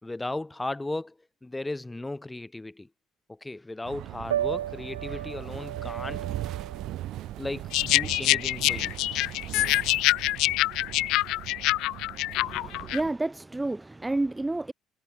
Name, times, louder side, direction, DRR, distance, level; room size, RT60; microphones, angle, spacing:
voice 1, 0.0-2.9 3.3-6.3 7.4-9.2, left 2 dB, 15° left, 4.7 m, -36 dB
sound 1, 3.8-13.1, right 14 dB, 65° right, 1.8 m, -39 dB
Piano, 4.2-10.2, right 11 dB, 90° right, 1.7 m, -36 dB
sound 2, 7.7-13.0, left 18 dB, 70° left, 0.8 m, -25 dB
voice 2, 12.4-14.7, right 2 dB, 15° right, 1.2 m, -30 dB
hypercardioid pair, 60°, 0 cm